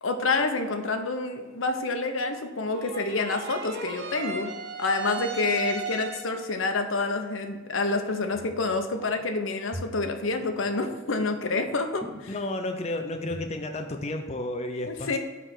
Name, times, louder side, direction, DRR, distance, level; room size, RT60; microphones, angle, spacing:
voice 1, 0.0-12.3 14.9-15.2, left 3 dB, 85° left, 5 dB, 0.9 m, -28 dB
sound 1, 2.7-6.5, right 5 dB, 60° right, 0.9 m, -36 dB
sound 2, 8.3-9.2 9.6-12.8 13.1-13.6 13.9-14.0, equal, 10° right, 1.0 m, -43 dB
voice 2, 12.3-15.2, left 1 dB, 35° left, 5 dB, 0.6 m, -32 dB
9.1 x 3.4 x 6.0 m, 1.3 s
head